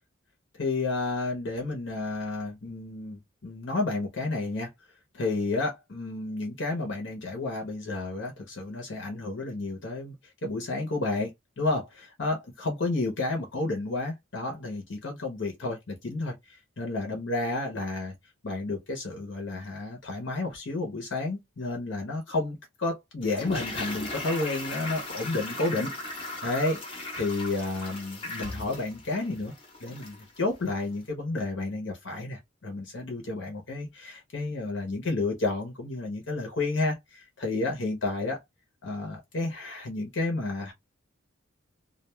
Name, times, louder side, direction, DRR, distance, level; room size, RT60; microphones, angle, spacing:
voice 1, 0.5-4.7 5.1-10.1 10.4-18.1 18.4-29.5 29.8-38.4 38.8-40.7, left 2 dB, 60° left, 0.8 m, -31 dB
Toilet flush, 23.2-30.3 30.6-30.7, left 2 dB, 25° left, 0.8 m, -38 dB
2.3 x 2.2 x 3.0 m
head